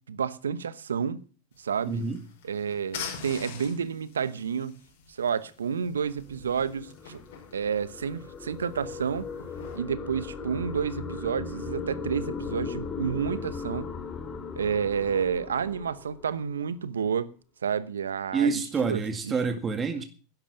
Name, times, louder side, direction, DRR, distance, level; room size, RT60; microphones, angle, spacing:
voice 1, 0.1-1.2 1.6-2.0 2.4-4.8 5.2-7.2 7.5-9.3 9.7-13.9 14.5-17.3 17.6-19.0, right 7 dB, 85° right, 0.9 m, -30 dB
sound 1, 1.5-9.8, left 7 dB, 70° left, 5.5 m, -45 dB
voice 2, 1.9-2.2 18.3-20.0, right 5 dB, 25° right, 2.0 m, -27 dB
sound 2, 6.2-16.6, left 4 dB, 35° left, 3.2 m, -38 dB
12.0 x 11.0 x 6.8 m
hypercardioid pair, 95°, 0 cm